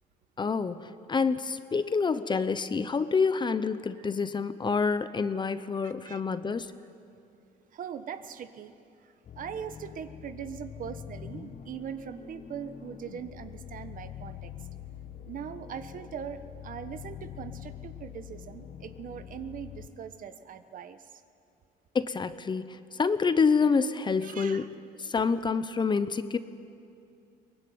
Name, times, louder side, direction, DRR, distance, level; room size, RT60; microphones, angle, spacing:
voice 1, 0.4-6.7 21.9-24.7 25.0-26.4, left 5 dB, 25° left, 12 dB, 0.9 m, -27 dB
voice 2, 5.8-6.2 7.7-8.7 9.0-14.5 15.3-21.2 24.2-24.7 25.2-25.3, right 8 dB, 55° right, 11 dB, 1.3 m, -41 dB
sound 1, 9.2-19.9, left 9 dB, 45° left, 1.3 m, -45 dB
23.0 x 20.0 x 9.5 m, 2.5 s
cardioid pair, 110°, 17 cm